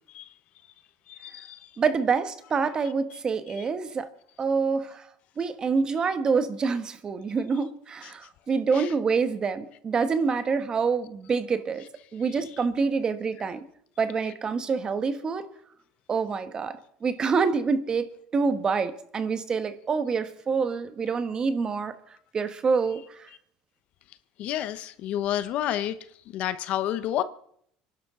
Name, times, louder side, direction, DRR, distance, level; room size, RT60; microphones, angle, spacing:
voice 1, 1.1-1.6 8.7-8.9 24.4-26.0 26.3-27.2, left 12 dB, 60° left, 0.9 m, -29 dB
voice 2, 1.8-4.1 4.4-5.0 5.4-11.8 12.1-13.6 14.0-15.5 16.1-21.9 22.3-23.0, right 5 dB, 30° right, 1.4 m, -26 dB
25.5 x 11.5 x 3.8 m
supercardioid pair, 100°, 3 cm